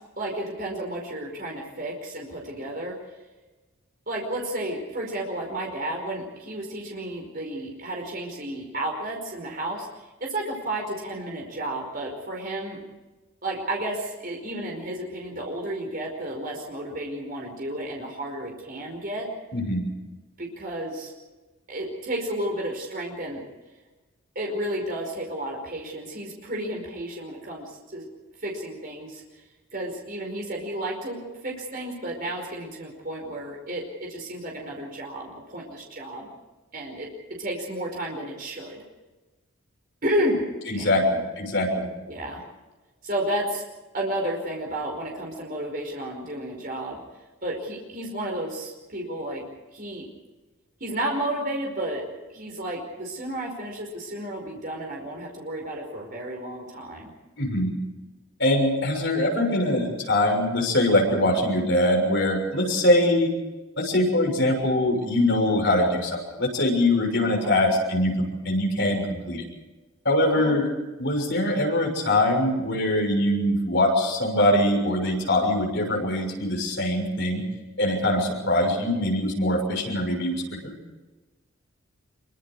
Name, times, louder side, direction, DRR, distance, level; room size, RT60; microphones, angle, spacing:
voice 1, 0.2-3.0 4.1-12.8 13.4-19.3 20.4-21.1 21.7-23.4 24.3-28.1 28.4-29.2 29.7-36.3 36.7-38.8 40.0-40.5 40.8-41.1 42.1-42.4 43.0-43.6 43.9-47.0 47.4-49.5 49.7-50.1 50.8-52.0 52.3-57.1 67.4-67.6 70.3-70.5, right 1 dB, 40° right, 0 dB, 5.0 m, -32 dB
voice 2, 19.5-19.9 40.7-41.9 57.4-57.7 58.4-63.3 63.8-69.4 70.0-70.7 71.0-77.4 77.8-80.7, left 1 dB, 55° left, 1 dB, 6.6 m, -23 dB
25.5 x 24.0 x 4.8 m, 1.2 s
head